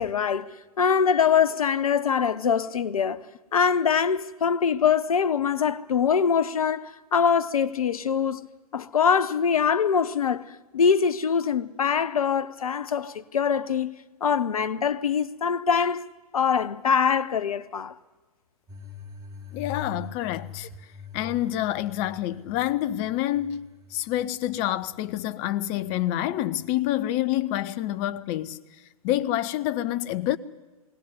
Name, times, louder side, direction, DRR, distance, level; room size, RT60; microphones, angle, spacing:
voice 1, 0.0-3.2 3.5-8.5 8.7-13.9 14.2-16.0 16.3-17.9, left 7 dB, 70° left, 0.8 m, -23 dB
sound 1, 18.7-26.7, left 4 dB, 20° right, 3.4 m, -44 dB
voice 2, 19.5-20.7 21.1-23.6 23.9-28.6 29.0-30.4, left 13 dB, 35° left, 0.8 m, -27 dB
21.0 x 17.0 x 9.6 m
figure-of-eight pair, 110°, 19 cm